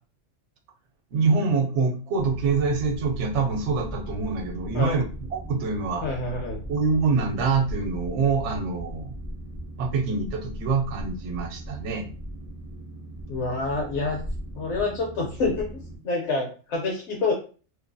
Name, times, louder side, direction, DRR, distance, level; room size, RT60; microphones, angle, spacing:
voice 1, 1.1-5.0 5.3-6.0 6.7-9.1 9.8-12.1, right 4 dB, 75° right, 3 dB, 0.9 m, -25 dB
Boat Water vehicle, 2.2-16.0, equal, 20° right, 0.7 m, -38 dB
voice 2, 6.0-6.6 13.3-14.2 14.6-17.3, left 3 dB, 75° left, -1 dB, 0.9 m, -27 dB
2.5 x 2.5 x 2.2 m, 0.37 s
omnidirectional pair, 1.2 m